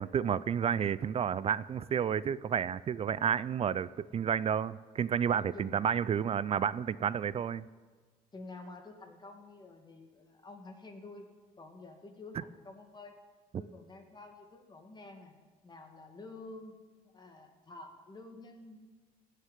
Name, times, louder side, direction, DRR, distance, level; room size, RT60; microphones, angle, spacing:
voice 1, 0.0-7.7, right 8 dB, 35° right, 18 dB, 0.4 m, -31 dB
voice 2, 5.4-5.9 8.3-13.1 13.5-15.3 15.6-16.8 17.0-18.8, left 2 dB, 25° left, 4 dB, 2.2 m, -49 dB
16.0 x 6.6 x 9.2 m, 1.4 s
cardioid pair, 110°, 17 cm